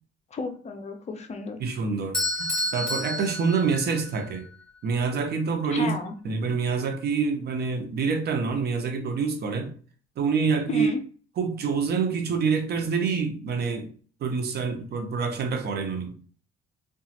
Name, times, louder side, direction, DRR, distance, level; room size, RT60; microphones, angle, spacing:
voice 1, 0.3-1.6 5.7-6.1 10.7-11.0, left 3 dB, 35° left, 0.5 m, -32 dB
voice 2, 1.6-4.5 4.8-5.9 6.2-9.7 10.2-10.9 11.4-13.9 14.2-16.1, right 5 dB, 55° right, 0.6 m, -26 dB
Bell / Doorbell, 2.1-4.2, left 1 dB, 5° left, 0.9 m, -30 dB
2.9 x 2.3 x 2.8 m
cardioid pair, 120°, 20 cm